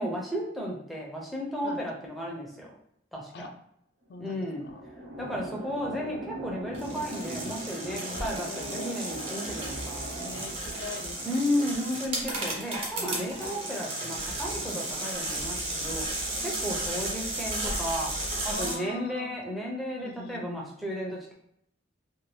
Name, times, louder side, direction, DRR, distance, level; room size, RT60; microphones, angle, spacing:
voice 1, 0.0-2.7 3.1-3.5 4.2-4.7 5.2-10.1 11.2-16.0 16.4-18.1 18.4-21.3, equal, ahead, -3 dB, 0.6 m, -33 dB
sound 1, 4.0-12.6, right 1 dB, 75° right, 0.9 m, -42 dB
voice 2, 4.1-4.8 7.9-9.0 10.2-11.6 13.0-13.5 14.7-14.9 16.4-16.7 18.4-19.3 20.0-20.8, left 3 dB, 55° left, 7 dB, 0.3 m, -42 dB
sound 2, 6.7-18.7, right 1 dB, 30° right, 0.8 m, -34 dB
2.6 x 2.5 x 3.2 m, 0.73 s
head